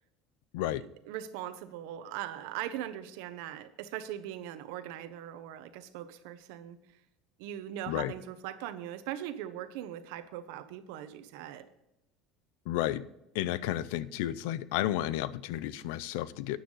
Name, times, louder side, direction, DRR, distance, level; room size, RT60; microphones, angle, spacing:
voice 1, 0.6-6.8 7.4-11.7, right 11 dB, 75° right, 11 dB, 1.1 m, -40 dB
voice 2, 12.7-13.1 13.3-16.6, left 13 dB, 75° left, 17 dB, 0.6 m, -32 dB
12.5 x 9.4 x 4.0 m, 0.88 s
cardioid pair, 180°, 0 cm